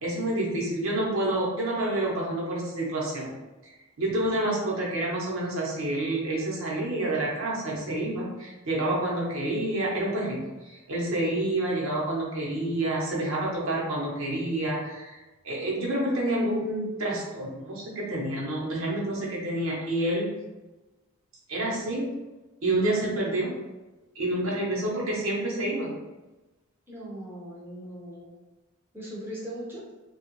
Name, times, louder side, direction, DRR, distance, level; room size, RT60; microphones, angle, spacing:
voice 1, 0.0-3.3 3.6-3.7 4.0-10.4 10.7-15.2 15.4-20.3 21.5-22.0 22.6-23.5 24.1-25.9, right 1 dB, 70° right, -4 dB, 0.9 m, -28 dB
voice 2, 26.9-28.3 28.9-29.8, equal, 10° right, -6 dB, 0.6 m, -39 dB
2.9 x 2.3 x 3.0 m, 1.1 s
head